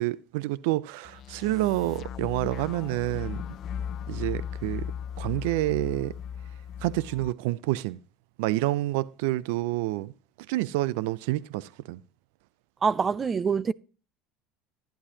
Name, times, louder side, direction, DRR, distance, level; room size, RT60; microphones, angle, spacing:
voice 1, 0.0-3.4 4.1-4.9 5.2-6.1 6.8-8.0 8.4-10.1 10.5-12.0, right 17 dB, 85° right, 0.4 m, -28 dB
sound 1, 1.0-7.3, left 8 dB, 45° left, 0.5 m, -37 dB
voice 2, 12.8-13.7, right 5 dB, 25° right, 0.4 m, -25 dB
11.5 x 10.0 x 2.8 m
supercardioid pair, 125°, 0 cm